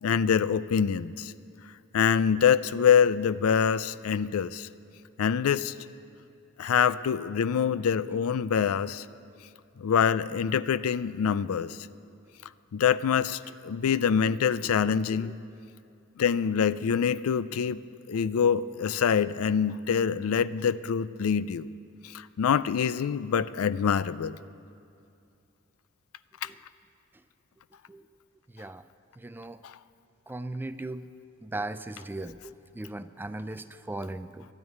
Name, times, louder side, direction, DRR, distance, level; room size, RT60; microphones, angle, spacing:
voice 1, 0.0-1.3 1.9-4.7 5.2-5.7 6.6-9.1 9.8-11.8 12.7-15.3 16.2-17.8 18.1-21.7 22.0-24.4 26.4-26.5 29.6-29.7, left 7 dB, 85° left, 17 dB, 0.4 m, -25 dB
voice 2, 29.2-29.6 30.3-31.1 31.4-34.5, right 2 dB, 10° right, 12 dB, 0.3 m, -38 dB
12.5 x 9.5 x 9.3 m, 2.4 s
head